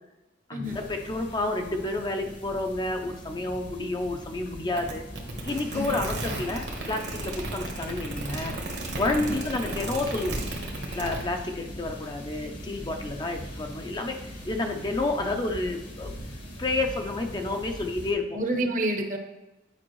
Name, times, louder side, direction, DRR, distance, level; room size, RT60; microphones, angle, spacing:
voice 1, 0.5-5.0 5.4-8.6 8.9-10.4 10.9-16.1 16.6-18.4, left 2 dB, 25° left, 4 dB, 0.5 m, -30 dB
sound 1, 0.6-18.1, equal, 80° left, 1.8 m, -41 dB
sound 2, 4.8-11.2, right 2 dB, 65° right, 1.2 m, -34 dB
voice 2, 18.3-19.2, right 1 dB, 45° right, 5 dB, 0.8 m, -29 dB
8.7 x 5.2 x 3.1 m, 0.98 s
head